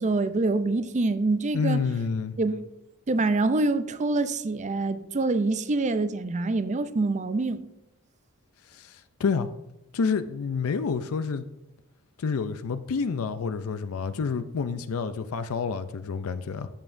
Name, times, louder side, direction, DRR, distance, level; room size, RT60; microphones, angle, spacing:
voice 1, 0.0-1.8 2.4-2.7 3.1-7.6, right 3 dB, 30° right, 0.5 m, -25 dB
voice 2, 1.5-2.3 8.7-9.5 9.9-11.5 12.2-16.7, left 5 dB, 65° left, 0.4 m, -28 dB
14.0 x 7.0 x 2.6 m
head